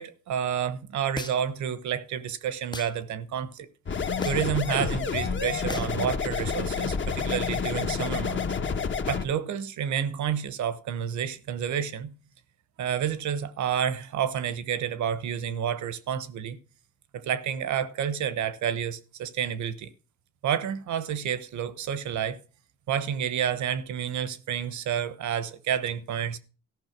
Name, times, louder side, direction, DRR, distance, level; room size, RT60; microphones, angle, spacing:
voice 1, 0.0-3.7 3.9-8.4 9.1-12.1 12.8-16.6 17.1-19.9 20.4-22.4 22.9-26.4, right 8 dB, 70° right, 1.1 m, -30 dB
sound 1, 1.2-1.6 2.7-2.9 4.2-4.6 5.7-6.0, left 3 dB, 15° left, 0.5 m, -37 dB
sound 2, 3.9-9.2, left 6 dB, 40° left, 1.1 m, -29 dB
14.0 x 5.7 x 5.9 m
cardioid pair, 90°, 30 cm